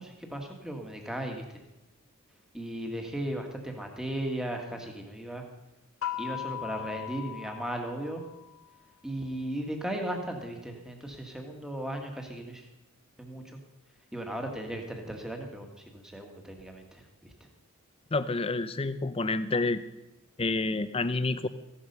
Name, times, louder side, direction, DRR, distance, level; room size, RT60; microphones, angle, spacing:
voice 1, 0.0-1.6 2.5-5.4 6.2-8.2 9.0-12.6 13.2-13.4 14.1-17.3, right 1 dB, 5° right, 3 dB, 1.6 m, -36 dB
sound 1, 6.0-8.7, left 11 dB, 70° left, 0.8 m, -38 dB
voice 2, 18.1-19.8 20.4-21.5, left 3 dB, 25° left, 13 dB, 0.5 m, -28 dB
15.5 x 11.0 x 5.5 m, 0.96 s
head